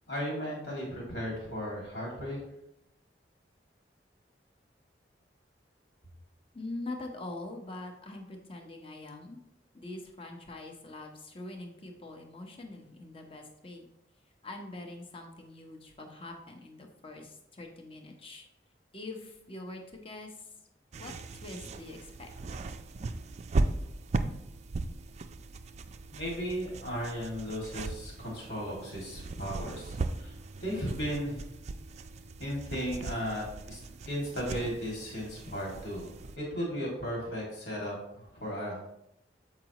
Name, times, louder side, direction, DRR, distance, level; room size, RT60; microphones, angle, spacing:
voice 1, 0.1-2.4 26.1-29.9 30.2-30.3 30.6-31.4 32.4-33.8 34.1-36.1 36.4-38.9, equal, 80° left, -3 dB, 2.2 m, -35 dB
voice 2, 6.5-9.4 9.7-13.9 14.4-18.5 18.9-20.5 21.0-22.6, left 2 dB, 30° left, 2 dB, 0.9 m, -44 dB
sound 1, 20.9-36.4, right 3 dB, 40° right, 0.3 m, -37 dB
7.4 x 4.8 x 3.0 m, 0.82 s
head